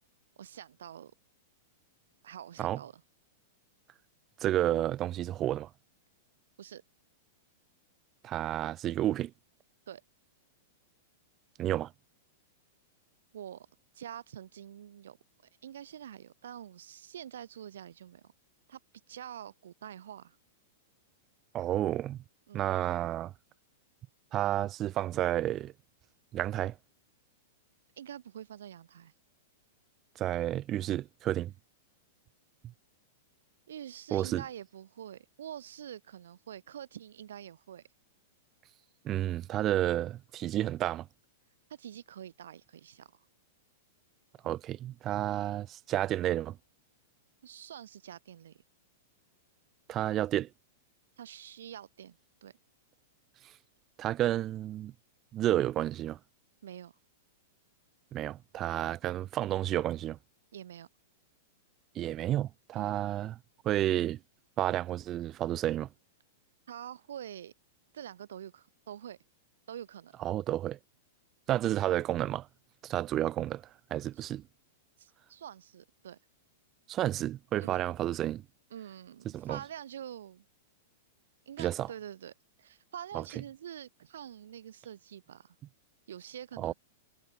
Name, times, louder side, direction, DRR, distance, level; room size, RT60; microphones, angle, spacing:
voice 1, 0.4-1.1 2.2-3.0 6.6-6.8 9.9-10.0 13.3-13.7 13.9-15.2 15.6-18.3 18.7-18.8 19.1-20.4 22.5-22.7 28.0-29.1 33.7-37.8 41.7-43.1 47.4-48.6 51.2-52.5 56.6-56.9 60.5-60.9 62.7-62.9 66.7-67.5 67.9-69.2 69.7-70.2 74.2-74.3 75.0-76.2 77.6-77.8 78.7-80.4 81.5-82.3 82.6-85.5 86.1-86.7, right 10 dB, 85° right, 6.2 m, -46 dB
voice 2, 4.4-5.7 8.2-9.3 11.6-11.9 21.5-22.2 22.5-23.3 24.3-25.7 26.3-26.7 30.2-31.5 34.1-34.4 39.0-41.1 44.4-46.6 49.9-50.5 54.0-54.9 55.3-56.2 58.1-60.2 61.9-63.4 63.6-64.2 64.6-65.9 70.2-70.8 71.5-72.5 72.8-73.6 73.9-74.4 76.9-78.4 79.3-79.6 81.6-81.9 83.1-83.2 86.6-86.7, right 13 dB, 20° right, 0.8 m, -31 dB
supercardioid pair, 175°, 0 cm